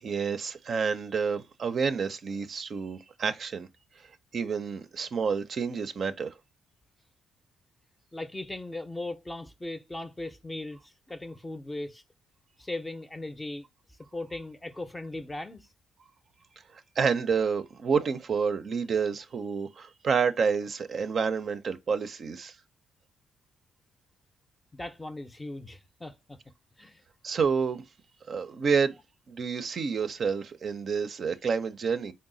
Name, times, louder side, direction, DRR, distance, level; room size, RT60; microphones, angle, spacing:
voice 1, 0.0-3.7 4.3-6.3 17.0-22.5 27.2-27.8 28.3-28.9 29.3-32.1, right 6 dB, 50° right, 0.5 m, -29 dB
voice 2, 8.1-12.0 12.6-13.6 14.1-15.7 24.7-26.4 26.8-27.0, left 2 dB, 15° left, 0.5 m, -38 dB
3.9 x 2.1 x 3.7 m
cardioid pair, 90°, 0 cm